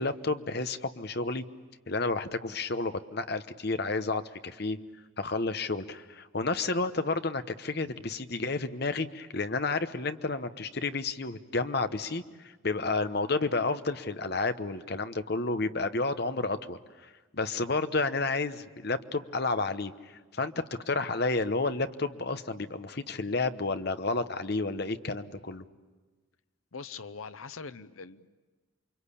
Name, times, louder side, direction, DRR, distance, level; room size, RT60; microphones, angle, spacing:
voice 1, 0.0-1.4 1.9-4.8 5.2-20.5 20.9-25.6, left 3 dB, 50° left, 10 dB, 1.0 m, -31 dB
voice 2, 26.7-28.3, left 5 dB, 85° left, 12 dB, 0.8 m, -42 dB
28.5 x 24.0 x 8.5 m, 1.3 s
head